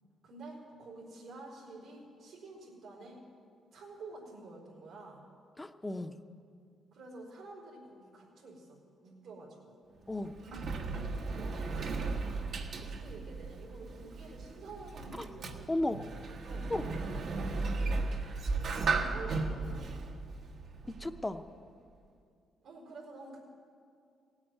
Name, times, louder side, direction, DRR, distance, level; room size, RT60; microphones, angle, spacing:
voice 1, 0.2-3.2 3.7-5.3 6.9-9.8 10.4-10.8 11.4-12.5 12.8-15.7 16.4-18.2 18.8-19.8 22.6-23.4, right 2 dB, 85° right, -3 dB, 4.2 m, -49 dB
voice 2, 5.6-6.2 10.1-10.3 15.2-15.3 15.7-16.0 16.7-16.9 20.9-21.4, left 1 dB, 15° left, 9 dB, 0.7 m, -34 dB
Sliding door, 10.0-21.4, right 3 dB, 65° right, 1.3 m, -36 dB
17.5 x 8.9 x 9.3 m, 2.4 s
cardioid pair, 90°, 0 cm